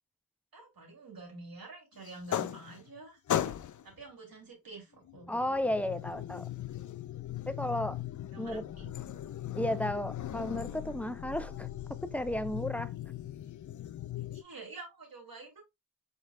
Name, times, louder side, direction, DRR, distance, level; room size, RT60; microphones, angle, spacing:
voice 1, 0.5-3.5 3.8-5.4 8.3-8.9 14.3-15.6, right 3 dB, 70° right, 2.8 m, -48 dB
sound 1, 2.0-3.0 3.3-3.9 5.1-14.4, left 11 dB, 55° left, 0.5 m, -38 dB
voice 2, 5.3-6.5 7.5-8.0 8.4-8.6 9.5-11.7 12.1-12.9, left 1 dB, 5° left, 0.6 m, -33 dB
4.9 x 4.3 x 2.3 m
cardioid pair, 50°, 36 cm